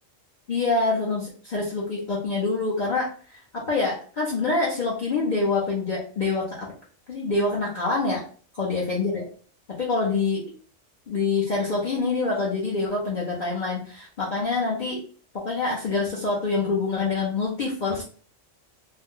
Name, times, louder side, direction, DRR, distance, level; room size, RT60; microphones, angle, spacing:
voice 1, 0.5-6.7 7.1-8.2 8.6-9.3 9.8-10.4 11.1-15.0 15.3-18.0, left 3 dB, 45° left, -5 dB, 0.7 m, -26 dB
2.6 x 2.1 x 3.6 m, 0.43 s
omnidirectional pair, 1.3 m